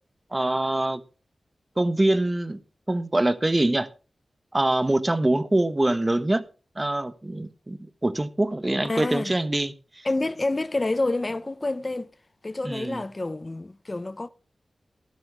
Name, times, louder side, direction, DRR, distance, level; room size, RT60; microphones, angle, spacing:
voice 1, 0.3-1.0 1.8-2.6 2.9-3.9 4.5-6.4 6.8-9.7 12.6-13.0, right 1 dB, 30° right, 1.2 m, -24 dB
voice 2, 8.8-9.4 10.0-12.1 12.4-14.3, left 2 dB, 40° left, 0.6 m, -28 dB
13.5 x 12.5 x 3.4 m
cardioid pair, 40°, 0 cm